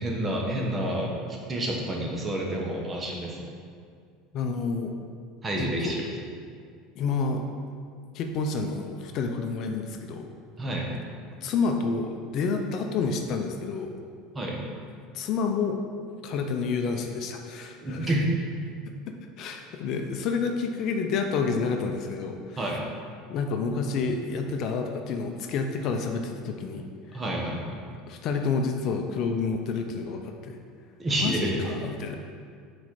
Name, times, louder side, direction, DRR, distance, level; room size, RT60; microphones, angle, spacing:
voice 1, 0.0-3.5 5.4-6.0 10.6-10.9 14.3-14.6 17.8-18.3 22.6-22.8 27.1-27.8 31.0-31.8, right 1 dB, 20° right, -1 dB, 1.3 m, -29 dB
voice 2, 4.3-5.0 5.6-5.9 7.0-7.4 8.1-10.3 11.4-13.9 15.1-15.8 16.2-18.1 19.4-22.6 23.3-26.8 28.1-30.6 31.2-32.2, left 4 dB, 55° left, 4 dB, 0.6 m, -29 dB
6.2 x 4.2 x 4.8 m, 2.2 s
supercardioid pair, 110°, 0 cm